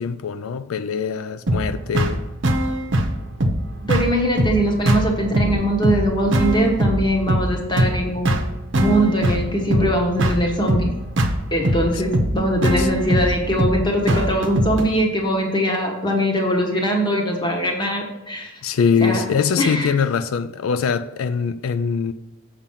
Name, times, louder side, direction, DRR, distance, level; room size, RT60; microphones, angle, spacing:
voice 1, 0.0-2.2 12.8-12.9 18.6-22.1, left 6 dB, 90° left, 0.4 m, -22 dB
sound 1, 1.5-14.9, right 1 dB, 60° right, 0.8 m, -22 dB
voice 2, 3.8-8.4 8.7-10.9 11.5-18.5 19.0-19.2 19.6-20.0, equal, 20° left, 1.3 m, -21 dB
7.4 x 5.1 x 5.6 m
head